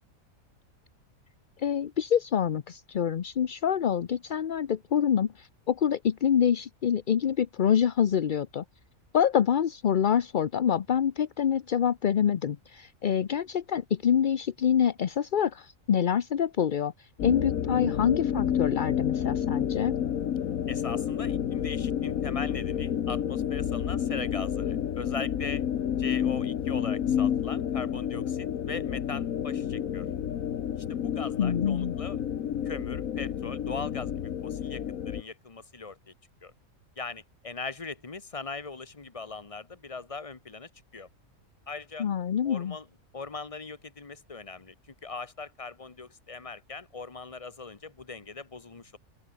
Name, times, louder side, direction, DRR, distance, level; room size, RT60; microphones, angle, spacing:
voice 1, 1.6-8.6 9.1-20.0 31.4-32.0 42.0-42.8, left 8 dB, 50° left, 0.6 m, -26 dB
sound 1, 17.2-35.2, left 9 dB, 75° left, 1.4 m, -30 dB
voice 2, 20.7-25.6 26.0-30.1 30.9-32.2 32.6-36.0 36.4-36.5 37.0-41.1 41.7-42.1 42.4-42.9 43.1-44.7 45.0-49.0, left 4 dB, 25° left, 1.3 m, -40 dB
open air
omnidirectional pair, 1.5 m